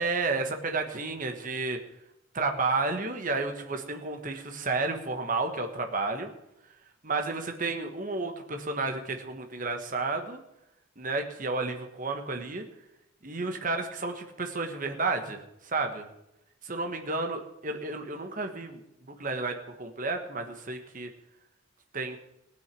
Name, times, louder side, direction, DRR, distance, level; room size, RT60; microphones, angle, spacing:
voice 1, 0.0-1.8 2.3-6.3 7.0-10.4 11.0-12.7 13.2-15.4 15.6-16.0 16.6-18.8 19.1-21.1 21.9-22.2, right 3 dB, 40° right, 5 dB, 1.3 m, -31 dB
16.5 x 6.5 x 8.4 m, 0.86 s
head